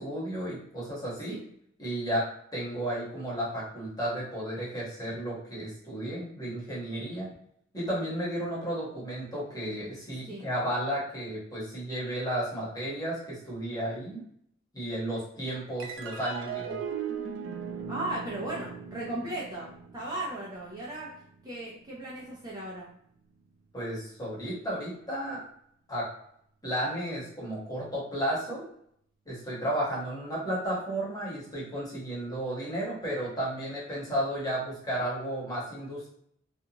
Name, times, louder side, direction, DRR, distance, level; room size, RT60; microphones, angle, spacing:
voice 1, 0.0-1.4 1.8-2.2 2.5-7.3 7.7-14.2 14.7-16.8 23.7-25.4 25.9-26.1 26.6-28.7 29.3-36.1, right 1 dB, 20° left, -6 dB, 1.1 m, -33 dB
sound 1, 15.8-22.5, right 6 dB, 70° right, 0.4 m, -39 dB
voice 2, 17.9-19.7 19.9-21.1 21.4-22.9, right 1 dB, 20° right, -6 dB, 0.6 m, -36 dB
2.6 x 2.3 x 2.8 m, 0.69 s
head